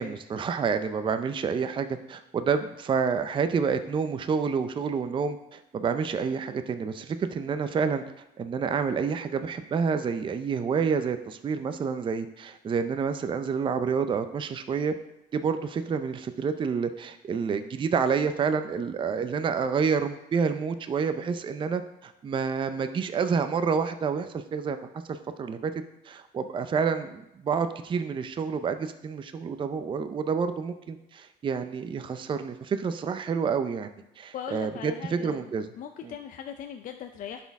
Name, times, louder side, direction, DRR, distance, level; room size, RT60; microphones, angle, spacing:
voice 1, 0.0-8.0 8.4-14.9 15.3-24.8 25.1-25.7 26.0-35.7 36.0-36.1, right 6 dB, 30° right, 9 dB, 0.5 m, -28 dB
voice 2, 34.3-37.4, left 8 dB, 50° left, 6 dB, 0.4 m, -39 dB
11.0 x 4.3 x 3.5 m, 0.86 s
cardioid pair, 110°, 17 cm